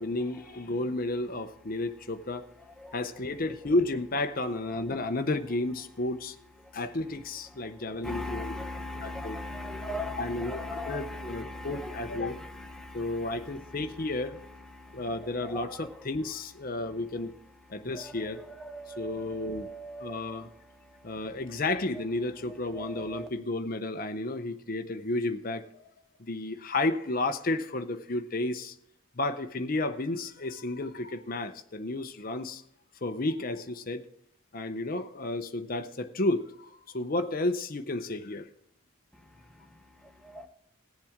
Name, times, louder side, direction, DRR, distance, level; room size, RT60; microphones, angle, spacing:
voice 1, 0.0-2.5 2.9-6.3 6.7-8.5 9.0-9.4 10.2-12.4 12.9-14.4 14.9-17.3 17.7-18.4 19.0-19.7 20.0-20.5 21.0-25.7 26.2-28.7 29.2-32.6 33.0-34.0 34.5-38.5, left 2 dB, 40° left, 8 dB, 0.7 m, -32 dB
voice 2, 8.0-14.1 14.6-15.9 17.9-20.5 22.7-23.3 40.2-40.5, left 1 dB, 5° left, 4 dB, 0.8 m, -40 dB
19.5 x 7.4 x 3.6 m, 0.72 s
head